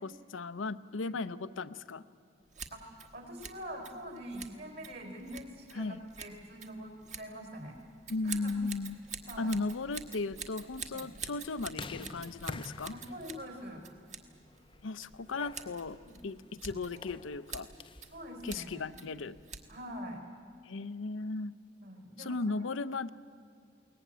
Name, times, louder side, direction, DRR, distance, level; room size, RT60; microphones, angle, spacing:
voice 1, 0.0-2.0 5.7-6.0 8.1-9.0 9.4-12.9 14.8-16.0 16.2-17.7 18.4-19.4 20.6-21.5 22.2-23.1, left 3 dB, 90° left, 13 dB, 0.7 m, -36 dB
Scissors, 2.5-20.0, right 6 dB, 40° right, 1.3 m, -48 dB
voice 2, 3.1-7.8 8.2-8.5 9.3-9.6 10.9-11.1 12.9-13.8 16.0-16.2 18.0-18.9 19.7-20.2 21.8-22.7, equal, 60° right, 3 dB, 4.5 m, -44 dB
sound 1, 9.1-18.2, left 3 dB, 25° left, 0.5 m, -49 dB
22.0 x 18.5 x 9.3 m, 2.4 s
head